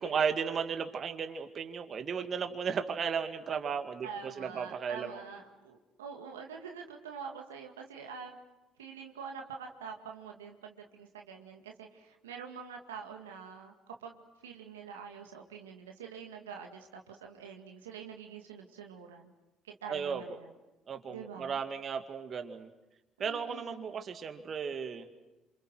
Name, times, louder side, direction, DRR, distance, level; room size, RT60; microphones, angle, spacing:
voice 1, 0.0-5.2 19.9-20.2 20.9-22.7 23.2-25.1, right 6 dB, 50° right, 6 dB, 2.2 m, -35 dB
voice 2, 4.0-8.4 8.8-19.3 19.6-20.5 21.1-21.6 23.2-23.9, right 6 dB, 90° right, 2 dB, 2.1 m, -46 dB
28.0 x 27.5 x 6.4 m, 1.0 s
hypercardioid pair, 55°, 0 cm